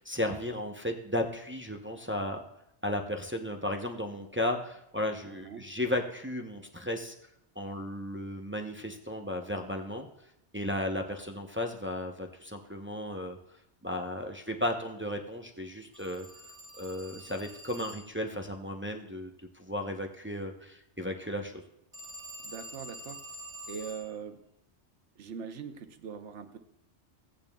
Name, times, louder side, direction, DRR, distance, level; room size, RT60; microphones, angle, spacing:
voice 1, 0.0-2.4 2.8-7.1 7.6-10.1 10.5-13.4 13.8-16.3 16.8-19.3 19.5-21.6, left 1 dB, 15° right, 3 dB, 0.5 m, -34 dB
voice 2, 5.2-5.7 22.4-23.2 23.7-24.4 25.2-26.6, right 7 dB, 85° right, 8 dB, 1.1 m, -42 dB
Telephone, 15.9-18.2 21.9-24.1, equal, 45° right, 2.3 m, -46 dB
16.5 x 8.9 x 2.3 m, 0.79 s
omnidirectional pair, 1.2 m